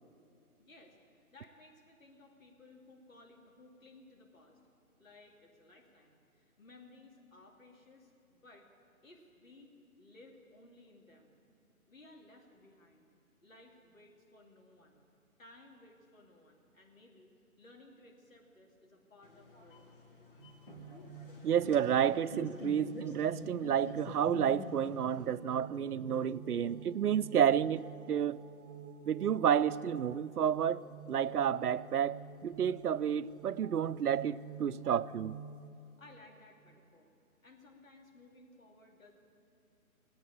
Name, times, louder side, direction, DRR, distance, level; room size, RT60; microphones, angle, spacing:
voice 1, 0.6-4.6 5.0-8.7 9.0-11.3 11.9-13.1 13.4-15.0 15.4-20.0 36.0-37.1 37.4-39.1, left 2 dB, 60° left, 2.7 m, -59 dB
sound 1, 19.2-25.3, left 2 dB, 35° left, 1.4 m, -47 dB
sound 2, 20.4-35.7, right 5 dB, 35° right, 1.0 m, -49 dB
voice 2, 21.4-28.4 29.1-30.8 31.1-35.4, right 9 dB, 90° right, 0.6 m, -30 dB
17.0 x 8.7 x 9.5 m
figure-of-eight pair, 165°, 44 cm